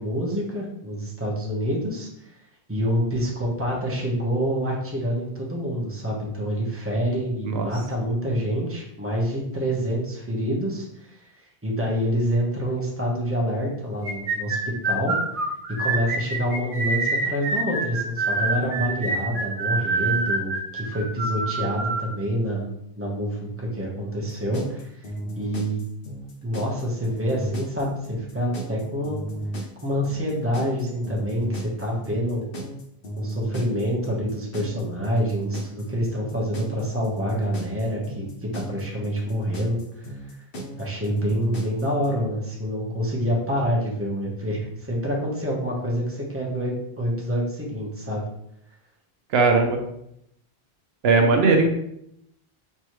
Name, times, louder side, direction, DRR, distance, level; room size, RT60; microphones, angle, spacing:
voice 1, 0.0-2.3 2.7-14.6 14.8-15.1 15.8-25.8 26.4-29.2 29.8-32.5 33.2-40.1 40.8-48.2, equal, 15° right, -3 dB, 1.0 m, -27 dB
sound 1, 14.0-22.1, right 3 dB, 55° right, 1.0 m, -26 dB
sound 2, 24.2-42.2, right 1 dB, 65° left, 1.0 m, -34 dB
voice 2, 49.3-49.8 51.0-51.7, right 3 dB, 80° right, 4 dB, 0.8 m, -18 dB
4.4 x 3.3 x 3.0 m, 0.75 s
omnidirectional pair, 1.0 m